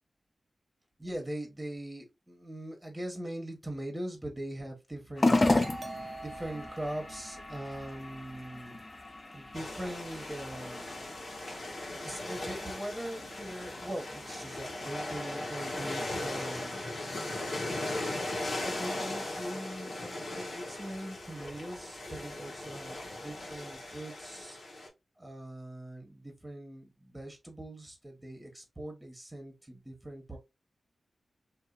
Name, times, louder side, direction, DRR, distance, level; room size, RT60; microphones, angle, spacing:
voice 1, 1.0-5.4 6.2-8.8 9.3-11.1 12.0-17.0 18.6-24.6 25.2-30.4, right 1 dB, 15° right, 1.0 m, -41 dB
sound 1, 5.2-23.8, left 2 dB, 40° left, 0.6 m, -37 dB
Doorbell, 5.6-9.0, right 2 dB, 65° right, 0.4 m, -46 dB
sound 2, 9.5-24.9, left 1 dB, 75° left, 0.9 m, -38 dB
2.8 x 2.2 x 2.4 m
cardioid pair, 40°, 0 cm